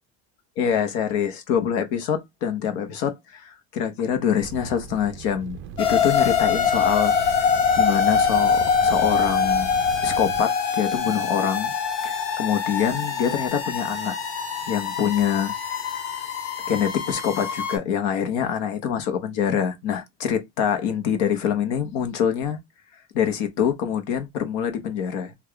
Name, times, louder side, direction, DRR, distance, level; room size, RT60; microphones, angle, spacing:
voice 1, 0.6-9.7 10.0-11.7 12.0-14.2 14.7-15.8 16.7-22.6 23.1-25.3, left 8 dB, 60° left, 0.9 m, -25 dB
Seamless Rocket Booster Roar & Crackle, 4.4-10.4, right 7 dB, 40° right, 0.4 m, -37 dB
sound 1, 5.8-17.8, left 6 dB, 90° left, 1.1 m, -24 dB
3.3 x 2.4 x 3.5 m
cardioid pair, 175°, 31 cm